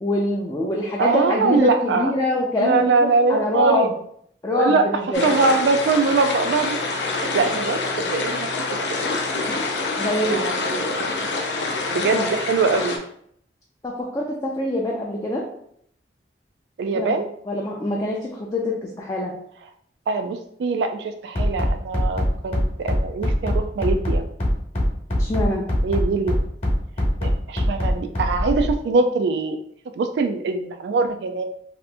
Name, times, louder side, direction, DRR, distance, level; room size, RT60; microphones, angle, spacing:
voice 1, 0.0-3.9 4.4-5.3 10.0-10.4 12.2-12.3 13.8-15.4 16.9-17.2 17.5-19.3 25.2-25.7, left 1 dB, 20° left, -3 dB, 0.4 m, -24 dB
voice 2, 1.0-2.1 2.5-3.9 4.5-4.9 5.2-6.8 7.1-8.5 8.9-9.2 10.2-11.2 11.9-13.0 16.8-17.3 20.1-24.2 25.8-26.4 27.2-29.6 30.0-31.4, right 3 dB, 75° right, 7 dB, 0.3 m, -22 dB
sound 1, 5.1-13.0, left 3 dB, 80° left, 0.5 m, -26 dB
Bass drum, 21.3-28.7, equal, 40° left, 0.9 m, -21 dB
2.8 x 2.5 x 3.3 m, 0.67 s
head